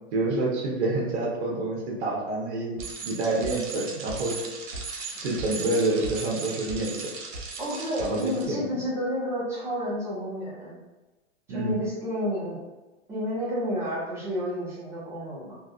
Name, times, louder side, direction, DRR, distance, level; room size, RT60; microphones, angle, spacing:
voice 1, 0.1-2.8 3.0-4.4 5.2-6.9 8.0-8.6 11.5-11.8, right 2 dB, 60° right, -3 dB, 0.9 m, -27 dB
Bicycle, 2.8-8.5, right 4 dB, 90° right, 0.7 m, -37 dB
voice 2, 7.6-10.8 11.5-12.6 13.1-15.6, equal, 5° right, -8 dB, 0.7 m, -30 dB
3.4 x 2.3 x 2.2 m, 1.1 s
hypercardioid pair, 140°, 38 cm